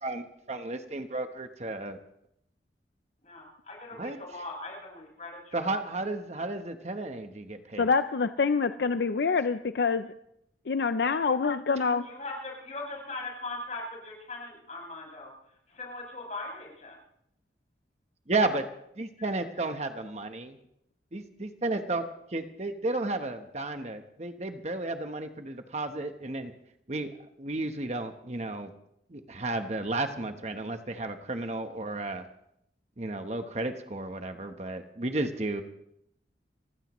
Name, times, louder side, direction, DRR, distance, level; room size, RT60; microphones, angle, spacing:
voice 1, 0.0-2.0 4.0-4.4 5.5-7.9 18.3-18.7 19.0-20.6 21.1-26.5 26.9-27.1 27.4-28.7 29.1-32.2 33.0-35.6, right 2 dB, 40° right, 7 dB, 1.0 m, -33 dB
voice 2, 3.2-5.6 12.0-15.3 15.8-16.9, left 2 dB, 40° left, -1 dB, 6.6 m, -40 dB
voice 3, 7.8-10.1 10.7-12.1, left 5 dB, 65° left, 10 dB, 0.5 m, -26 dB
29.0 x 15.5 x 3.1 m, 0.77 s
head